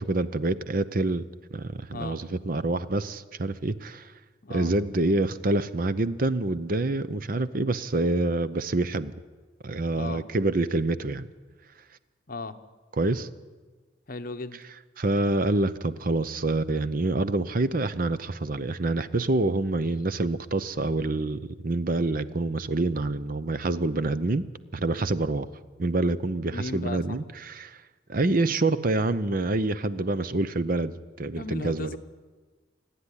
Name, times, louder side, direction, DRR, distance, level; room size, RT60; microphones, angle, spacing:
voice 1, 0.0-4.1 4.5-9.1 9.6-11.3 13.0-13.3 15.0-24.5 24.7-25.5 25.8-27.8 28.1-32.0, right 2 dB, 45° right, 14 dB, 0.7 m, -27 dB
voice 2, 1.9-2.2 4.4-4.7 9.9-10.2 12.3-12.6 14.1-14.6 25.0-25.1 26.5-27.2 31.4-32.0, left 2 dB, 50° left, 8 dB, 1.0 m, -36 dB
28.0 x 9.9 x 9.9 m, 1.4 s
head